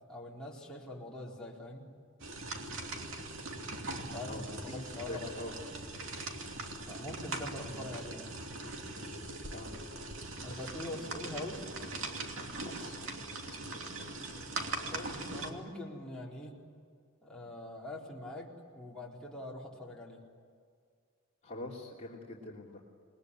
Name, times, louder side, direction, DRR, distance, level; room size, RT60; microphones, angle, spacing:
voice 1, 0.1-1.9 4.0-5.3 6.9-8.4 10.4-11.7 14.9-16.6 17.2-20.2, left 1 dB, 5° left, -5 dB, 4.1 m, -43 dB
sound 1, 2.2-15.5, right 2 dB, 65° right, 2.8 m, -41 dB
voice 2, 4.2-5.5 9.5-9.7 10.5-10.7 10.9-11.1 12.6-13.2 13.5-13.8 21.4-22.8, left 1 dB, 30° left, -3 dB, 2.9 m, -45 dB
28.5 x 21.0 x 9.9 m, 2.1 s
head